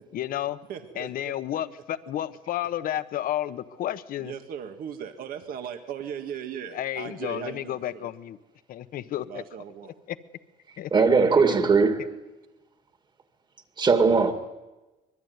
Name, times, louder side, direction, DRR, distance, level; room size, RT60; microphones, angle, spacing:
voice 1, 0.1-0.6 1.0-4.3 6.7-8.4 8.7-9.4 10.1-10.2 10.8-11.1, left 12 dB, 65° left, 1.2 m, -31 dB
voice 2, 0.7-1.3 4.2-8.1 9.3-10.0, right 8 dB, 65° right, 2.1 m, -38 dB
voice 3, 10.9-12.2 13.8-14.3, right 4 dB, 30° right, 2.3 m, -20 dB
24.5 x 22.5 x 9.6 m
cardioid pair, 150°, 16 cm